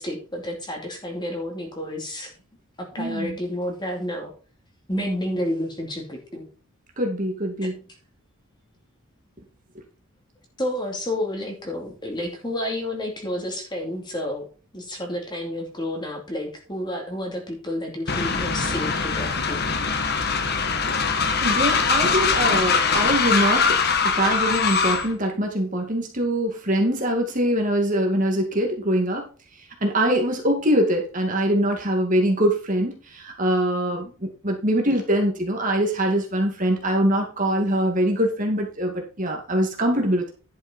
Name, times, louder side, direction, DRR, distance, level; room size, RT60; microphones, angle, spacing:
voice 1, 0.0-2.3 2.8-4.3 4.9-6.5 7.6-7.7 10.6-14.5 14.7-19.6, left 1 dB, 20° left, 1 dB, 2.6 m, -30 dB
voice 2, 3.0-3.4 7.0-7.8 21.4-29.3 29.8-40.3, right 1 dB, 35° right, 2 dB, 2.2 m, -23 dB
Train, 18.1-25.1, left 5 dB, 45° left, 1.2 m, -22 dB
11.0 x 6.5 x 4.5 m, 0.36 s
head